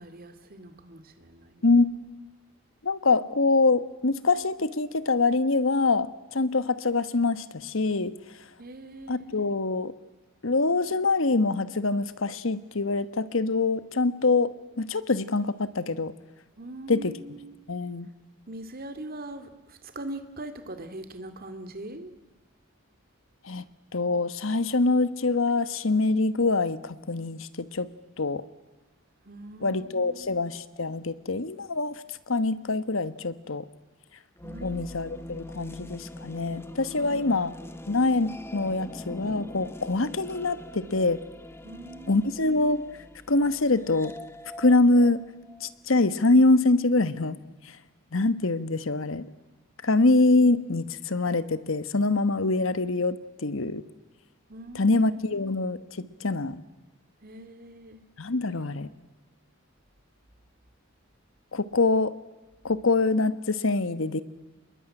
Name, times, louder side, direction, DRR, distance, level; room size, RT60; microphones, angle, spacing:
voice 1, 0.0-1.9 8.6-9.5 16.6-17.6 18.5-22.2 29.3-30.4 34.4-35.4 36.9-37.4 41.6-42.5 54.5-55.5 57.2-58.0 58.5-58.9, right 1 dB, 45° right, 9 dB, 2.3 m, -42 dB
voice 2, 2.8-8.1 9.1-9.9 10.4-14.5 14.8-16.1 16.9-17.1 17.7-18.1 23.4-23.6 23.9-27.9 28.2-28.4 29.6-33.6 34.6-37.5 37.9-41.2 42.1-42.9 43.3-44.1 44.6-45.2 45.6-47.4 47.6-47.8 48.1-49.3 49.8-53.8 54.7-56.6 58.2-58.9 61.5-62.1 62.6-64.2, left 3 dB, 70° left, 14 dB, 1.2 m, -24 dB
sound 1, 34.4-46.2, left 1 dB, 10° left, 0.9 m, -43 dB
26.0 x 21.5 x 9.9 m, 1.2 s
head